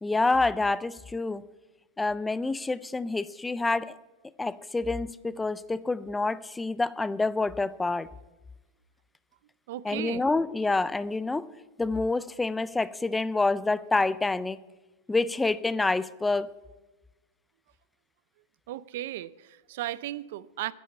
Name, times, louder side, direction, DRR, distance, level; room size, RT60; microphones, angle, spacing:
voice 1, 0.0-1.4 2.0-3.9 4.4-8.1 9.8-11.5 11.8-14.6 15.1-16.5, left 3 dB, 5° left, 0.3 m, -27 dB
voice 2, 9.7-10.2 18.7-20.7, right 14 dB, 60° right, 0.5 m, -35 dB
9.7 x 8.6 x 8.5 m
supercardioid pair, 170°, 0 cm